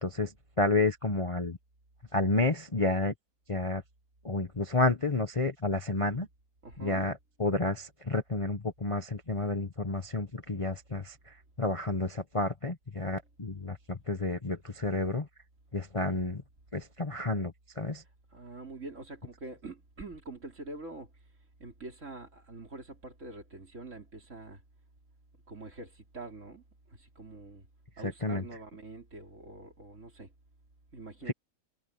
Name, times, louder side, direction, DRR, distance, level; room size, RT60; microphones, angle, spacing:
voice 1, 0.0-0.3 0.6-1.6 2.1-3.1 3.5-3.8 4.2-6.3 6.8-11.1 11.6-15.3 15.7-16.4 16.7-18.0 28.0-28.4 31.3-31.4, left 2 dB, 25° left, 1.0 m, -30 dB
voice 2, 6.6-7.1 18.3-21.1 21.6-24.6 25.5-27.7 28.0-30.3 30.9-31.3, right 2 dB, 50° right, 4.0 m, -45 dB
omnidirectional pair, 1.7 m